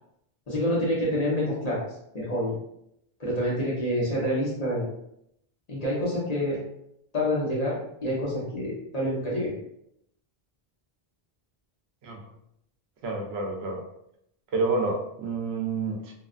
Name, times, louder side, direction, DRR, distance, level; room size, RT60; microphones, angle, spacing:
voice 1, 0.5-1.8 2.1-2.5 3.2-4.9 5.7-6.6 7.1-9.5, equal, 40° left, -6 dB, 1.0 m, -27 dB
voice 2, 13.0-13.8 14.5-16.1, right 3 dB, 80° right, 0 dB, 0.9 m, -29 dB
2.7 x 2.3 x 2.4 m, 0.77 s
omnidirectional pair, 1.0 m